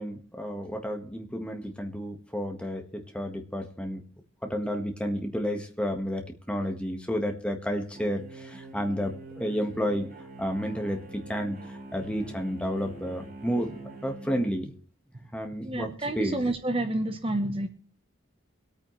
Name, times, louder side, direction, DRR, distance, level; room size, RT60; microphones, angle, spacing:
voice 1, 0.0-4.0 4.4-10.1 10.4-14.7 15.3-16.4, equal, 5° left, 4 dB, 1.5 m, -31 dB
sound 1, 7.9-14.5, right 2 dB, 45° right, 2.8 m, -44 dB
voice 2, 15.7-17.7, right 1 dB, 25° right, 7 dB, 0.9 m, -29 dB
24.0 x 8.9 x 3.2 m, 0.43 s
head